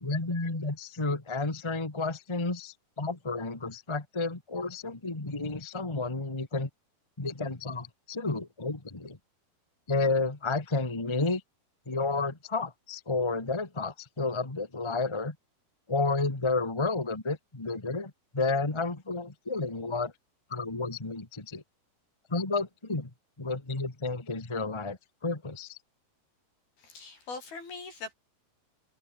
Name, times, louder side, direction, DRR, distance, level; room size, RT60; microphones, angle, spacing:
voice 1, 0.0-6.7 7.2-9.2 9.9-11.4 11.8-15.3 15.9-20.1 20.5-21.6 22.3-23.1 23.4-25.8, left 3 dB, 15° left, 1.0 m, -31 dB
voice 2, 26.8-28.1, left 4 dB, 75° left, 10.0 m, -41 dB
omnidirectional pair, 4.4 m